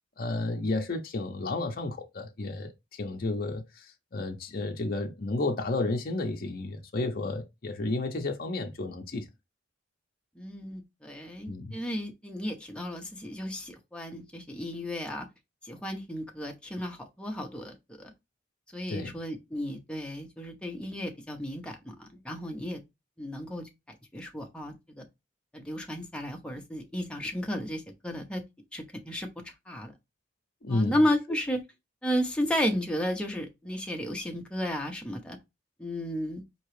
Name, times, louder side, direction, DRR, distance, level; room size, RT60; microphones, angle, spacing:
voice 1, 0.2-9.3 11.5-11.8 18.9-19.1 30.6-31.0, left 2 dB, 50° left, 0.6 m, -32 dB
voice 2, 10.4-15.3 15.6-18.1 18.7-22.8 23.2-25.0 25.5-28.4 28.7-29.3 29.7-29.9 30.7-31.6 32.0-35.4 35.8-36.4, equal, 5° left, 0.8 m, -33 dB
4.4 x 2.9 x 3.1 m
head